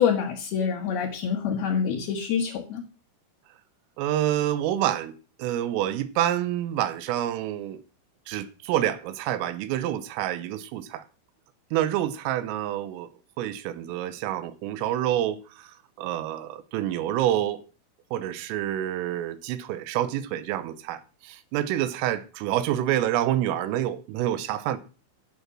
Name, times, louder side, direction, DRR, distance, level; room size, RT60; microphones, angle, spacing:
voice 1, 0.0-2.8, left 7 dB, 65° left, 2.7 m, -26 dB
voice 2, 4.0-7.8 8.3-11.0 11.7-13.1 13.4-15.7 16.0-17.6 18.1-24.8, right 12 dB, 90° right, 3.5 m, -27 dB
12.0 x 8.4 x 6.2 m
omnidirectional pair, 5.9 m